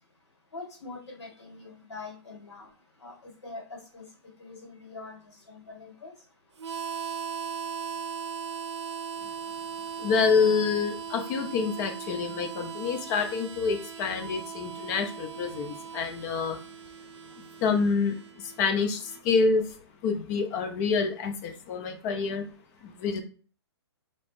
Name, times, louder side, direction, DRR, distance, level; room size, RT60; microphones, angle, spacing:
voice 1, 0.5-2.7 3.0-4.0 4.4-6.1, left 3 dB, 90° left, 0 dB, 2.0 m, -44 dB
Harmonica, 6.6-19.2, right 7 dB, 85° right, 0.6 m, -39 dB
voice 2, 10.0-16.6 17.6-18.2 18.6-19.6 20.0-22.5 23.0-23.2, left 5 dB, 35° left, 6 dB, 0.9 m, -27 dB
3.3 x 2.9 x 4.3 m, 0.38 s
hypercardioid pair, 135°, 14 cm